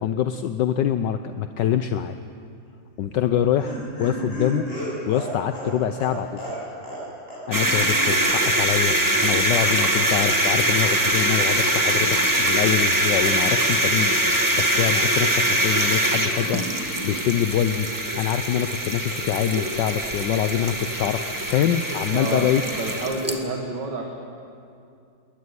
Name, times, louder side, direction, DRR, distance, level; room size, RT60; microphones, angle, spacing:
voice 1, 0.0-2.2 3.0-4.7 5.1-6.6 7.5-9.0 9.2-16.6 17.0-17.9 18.2-21.2 21.5-22.6, left 10 dB, 70° left, 9 dB, 1.3 m, -25 dB
Laughter, 3.0-7.0 7.3-7.4 7.7-7.8, right 1 dB, 30° left, 7.0 m, -33 dB
sound 1, 7.5-23.4, right 1 dB, 10° right, 1.7 m, -23 dB
voice 2, 22.1-22.5 22.8-24.0, right 3 dB, 65° right, 1 dB, 2.4 m, -29 dB
20.5 x 20.5 x 9.6 m, 2.5 s
omnidirectional pair, 2.1 m